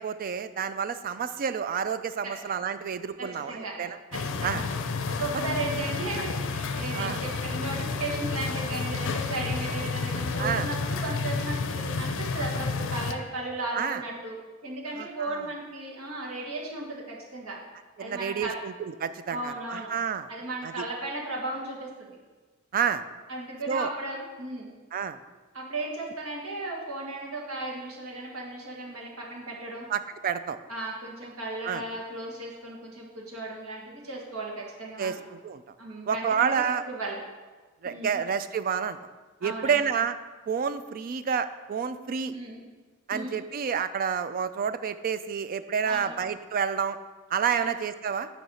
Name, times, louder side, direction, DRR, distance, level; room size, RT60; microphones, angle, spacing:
voice 1, 0.0-4.0 4.4-4.6 6.9-7.2 10.4-10.7 13.7-14.0 15.0-15.4 18.0-20.3 20.6-20.8 22.7-23.0 23.7-23.9 24.9-25.2 29.9-30.6 31.6-31.8 35.0-35.6 36.1-36.8 37.8-39.0 39.4-40.2 40.5-42.3 43.1-47.0 47.3-48.3, right 7 dB, 40° right, 12 dB, 0.3 m, -29 dB
voice 2, 3.2-3.7 4.1-4.7 5.1-14.4 14.6-17.6 18.0-18.6 19.3-19.9 20.3-22.2 23.3-24.7 25.5-29.8 30.7-35.2 35.8-37.2 37.8-38.2 39.4-39.9 42.3-42.6 43.1-43.4 45.8-46.1 47.5-47.7, right 2 dB, 70° right, -2 dB, 1.6 m, -35 dB
sound 1, 4.1-13.1, left 4 dB, 60° left, 0.5 m, -31 dB
9.3 x 3.2 x 6.2 m, 1.3 s
head